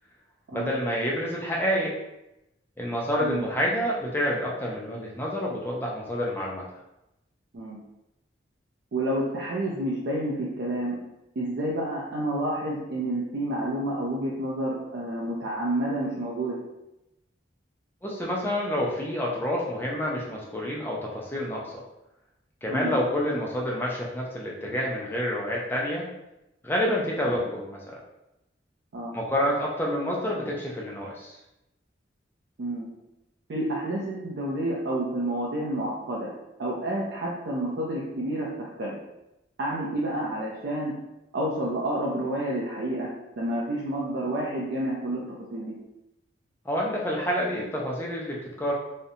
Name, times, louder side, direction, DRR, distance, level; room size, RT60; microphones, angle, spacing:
voice 1, 0.5-2.0 2.8-6.6 18.0-21.7 22.6-26.1 26.6-27.8 29.1-31.4 46.7-48.7, equal, 10° left, -4 dB, 0.4 m, -28 dB
voice 2, 8.9-11.0 11.4-16.6 22.7-22.9 27.2-27.4 28.9-29.1 32.6-32.9 33.5-36.3 36.6-39.0 39.6-41.0 41.3-45.7, right 1 dB, 70° right, -4 dB, 0.4 m, -29 dB
2.5 x 2.1 x 2.7 m, 0.91 s
head